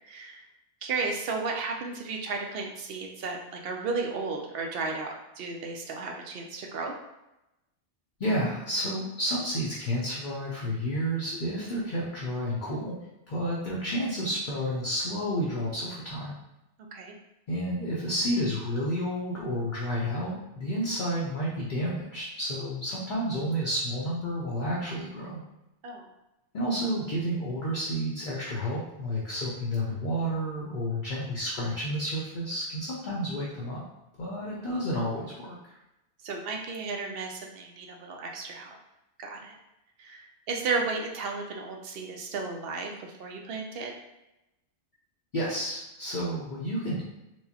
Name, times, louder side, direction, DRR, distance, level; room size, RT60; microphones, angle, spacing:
voice 1, 0.0-0.4 0.8-6.9 16.9-17.1 25.8-26.1 36.2-38.8 39.2-39.5 40.0-43.9, right 4 dB, 65° right, 1 dB, 0.7 m, -34 dB
voice 2, 8.2-13.0 13.3-16.4 17.5-25.4 26.5-33.8 34.2-35.7 45.3-47.0, equal, 50° left, -6 dB, 0.7 m, -30 dB
4.5 x 2.1 x 2.8 m, 0.93 s
omnidirectional pair, 1.2 m